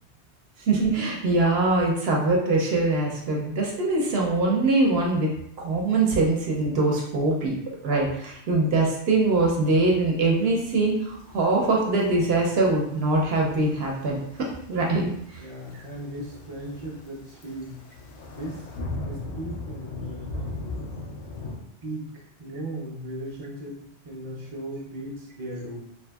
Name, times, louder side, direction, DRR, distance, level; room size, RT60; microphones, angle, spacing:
voice 1, 0.6-5.3 5.6-7.6 7.8-14.2 14.7-15.4, right 2 dB, 70° right, -1 dB, 0.8 m, -23 dB
sound 1, 9.2-21.6, left 2 dB, 80° left, 0.9 m, -39 dB
voice 2, 15.4-17.8 18.3-18.7 19.0-20.4 21.8-23.8 24.0-25.8, right 1 dB, 35° right, -2 dB, 0.5 m, -37 dB
2.8 x 2.5 x 2.2 m, 0.75 s
omnidirectional pair, 1.2 m